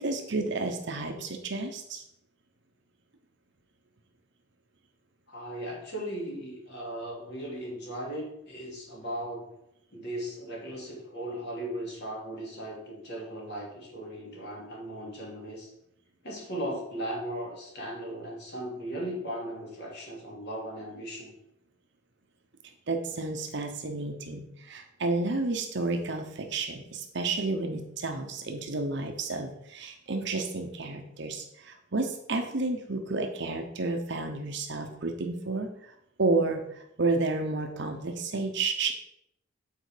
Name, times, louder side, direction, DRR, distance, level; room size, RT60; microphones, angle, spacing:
voice 1, 0.0-2.0 22.9-38.9, right 3 dB, 60° right, 5 dB, 0.9 m, -31 dB
voice 2, 5.3-9.5 9.9-15.7 16.2-21.3, right 1 dB, 60° left, -3 dB, 2.8 m, -37 dB
8.9 x 4.4 x 5.0 m, 0.77 s
head